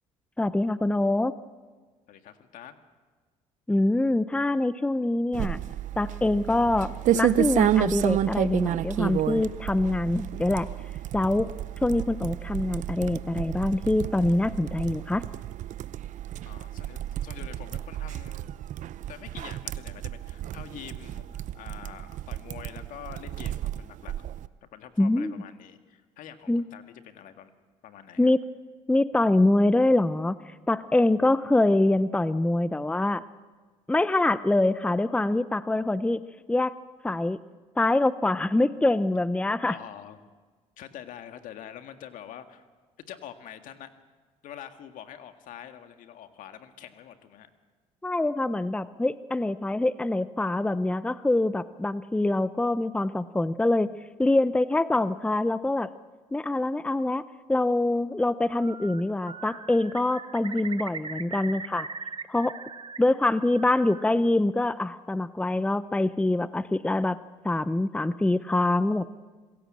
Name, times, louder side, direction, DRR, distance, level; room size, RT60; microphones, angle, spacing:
voice 1, 0.4-1.4 3.7-5.6 6.0-10.7 11.1-11.5 11.8-15.2 25.0-25.3 26.5-26.6 28.2-28.4 28.9-33.2 33.9-36.2 36.5-36.7 37.0-37.4 37.8-39.8 48.0-53.9 54.2-55.9 56.3-61.9 62.3-62.6 63.0-67.2 67.4-69.1, left 2 dB, 10° left, 15 dB, 0.7 m, -24 dB
voice 2, 2.1-2.8 16.5-18.5 19.1-24.1 24.6-27.5 27.8-28.3 39.7-40.2 40.8-42.7 43.1-43.9 44.4-47.5, left 10 dB, 65° left, 8 dB, 1.8 m, -45 dB
sound 1, 5.3-24.5, right 12 dB, 60° right, 0.8 m, -31 dB
Bird, 58.4-59.0 59.3-63.0 63.3-64.1, right 5 dB, 35° right, 1.6 m, -40 dB
26.5 x 16.5 x 7.6 m, 1.4 s
supercardioid pair, 70°, 14 cm